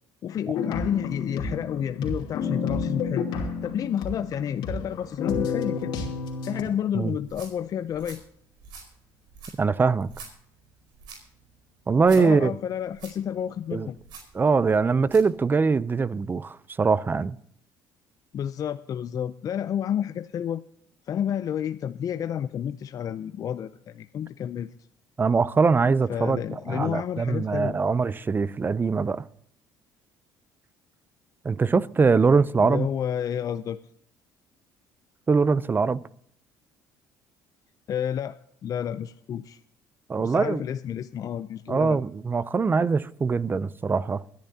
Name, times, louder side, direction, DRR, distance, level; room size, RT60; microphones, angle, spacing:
voice 1, 0.2-3.3 3.6-5.9 6.4-8.2 12.1-14.0 18.3-20.6 21.1-24.7 26.1-27.8 32.6-33.8 37.9-38.4 38.6-39.6 40.2-42.0, left 9 dB, 50° left, 0.5 m, -30 dB
sound 1, 0.5-6.6, left 5 dB, 75° left, 2.7 m, -30 dB
sound 2, 7.1-15.3, right 4 dB, 70° right, 4.8 m, -48 dB
voice 2, 9.6-10.1 11.9-12.5 13.7-13.9 14.3-17.4 25.2-26.4 26.7-29.2 31.4-32.9 35.3-36.0 40.1-40.6 41.7-44.2, right 4 dB, 25° right, 0.5 m, -22 dB
24.5 x 10.5 x 2.8 m
supercardioid pair, 90°, 8 cm